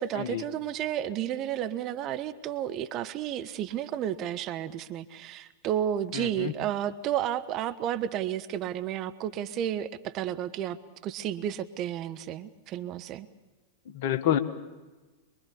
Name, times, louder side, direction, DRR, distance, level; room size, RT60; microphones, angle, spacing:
voice 1, 0.0-10.8 11.0-13.3, right 10 dB, 40° right, 10 dB, 1.1 m, -32 dB
voice 2, 6.1-6.5 13.9-14.4, left 11 dB, 55° left, 9 dB, 1.5 m, -27 dB
23.5 x 22.5 x 7.0 m, 1.2 s
figure-of-eight pair, 95°, 0 cm